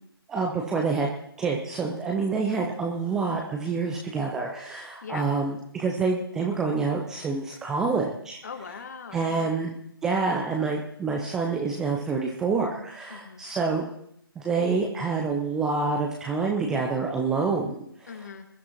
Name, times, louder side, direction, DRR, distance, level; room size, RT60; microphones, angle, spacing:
voice 1, 0.3-1.1 1.4-8.4 9.1-9.7 10.0-13.9 14.4-18.1, right 4 dB, 5° right, 0 dB, 0.4 m, -27 dB
voice 2, 8.4-9.6 13.1-13.4 18.1-18.5, left 6 dB, 40° left, 8 dB, 1.4 m, -40 dB
21.0 x 12.0 x 2.9 m, 0.73 s
figure-of-eight pair, 145°, 13 cm